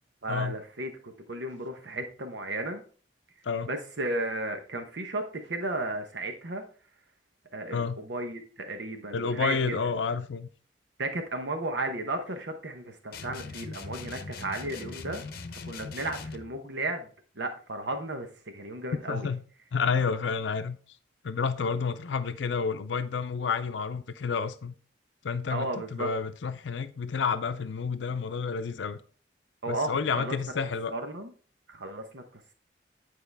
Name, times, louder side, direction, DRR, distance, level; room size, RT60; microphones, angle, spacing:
voice 1, 0.2-2.8 3.6-6.6 7.5-9.8 11.0-15.2 15.7-17.1 17.4-19.3 25.5-26.1 29.6-30.4 30.9-31.3 31.7-32.5, right 2 dB, 75° right, 1.0 m, -34 dB
voice 2, 9.1-10.5 19.1-19.4 19.7-20.8 21.2-24.7 25.2-29.0 29.7-30.9, left 5 dB, 85° left, 0.5 m, -30 dB
sound 1, 13.1-16.5, left 4 dB, 55° left, 0.8 m, -41 dB
9.6 x 4.7 x 3.4 m
head